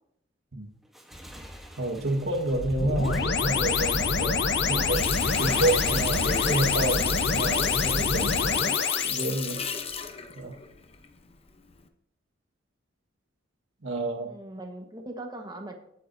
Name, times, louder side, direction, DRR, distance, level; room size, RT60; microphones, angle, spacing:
Motorcycle / Engine, 0.8-8.5, equal, ahead, 1.1 m, -43 dB
voice 1, 1.8-4.4 4.7-5.0 5.2-9.6 10.3-10.6 13.8-14.3, right 2 dB, 90° right, 1 dB, 1.6 m, -29 dB
sound 1, 2.5-9.3, left 5 dB, 60° left, 0.9 m, -26 dB
voice 2, 4.2-5.0 14.3-15.7, right 1 dB, 20° right, 4 dB, 1.3 m, -41 dB
Water tap faucet, 4.9-11.3 11.7-11.9, left 6 dB, 30° left, 0.8 m, -35 dB
19.5 x 8.4 x 2.7 m, 0.74 s
head